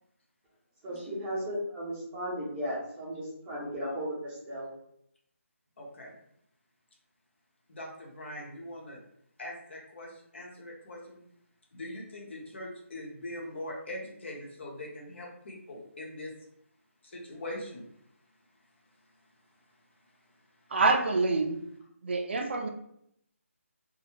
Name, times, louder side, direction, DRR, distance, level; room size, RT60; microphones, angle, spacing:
voice 1, 0.8-4.7, equal, 10° right, -9 dB, 0.7 m, -35 dB
voice 2, 5.8-6.1 7.7-9.0 9.4-11.2 11.7-16.3 17.0-17.8, left 1 dB, 50° left, -2 dB, 0.8 m, -42 dB
voice 3, 20.7-21.7 22.0-22.7, right 3 dB, 50° right, 3 dB, 0.4 m, -26 dB
2.3 x 2.0 x 3.0 m, 0.73 s
figure-of-eight pair, 165°, 8 cm